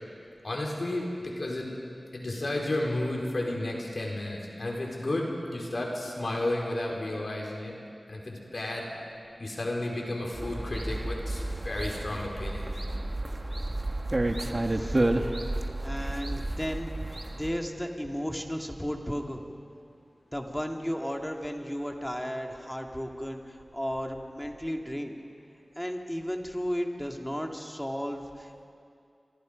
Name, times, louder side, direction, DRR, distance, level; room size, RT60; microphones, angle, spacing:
voice 1, 0.4-1.7 2.1-7.7 8.1-8.9 9.4-12.7, left 1 dB, 60° left, -1 dB, 4.5 m, -32 dB
sound 1, 10.3-17.6, right 1 dB, 40° right, 1.5 m, -31 dB
voice 2, 15.8-16.9 17.3-19.4 20.3-25.2 25.8-28.6, equal, 5° left, 2 dB, 2.2 m, -34 dB
26.0 x 24.5 x 5.2 m, 2.5 s
wide cardioid pair, 55°, 0 cm